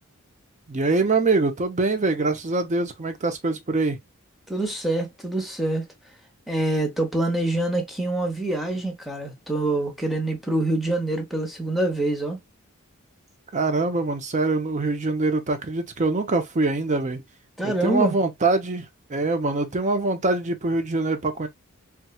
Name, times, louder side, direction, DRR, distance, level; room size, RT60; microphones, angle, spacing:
voice 1, 0.7-4.0 13.5-17.2 17.6-21.5, right 3 dB, 35° right, 0.6 m, -24 dB
voice 2, 4.5-5.8 6.5-12.4 17.6-18.1, right 2 dB, ahead, 0.8 m, -25 dB
4.2 x 2.3 x 2.2 m
head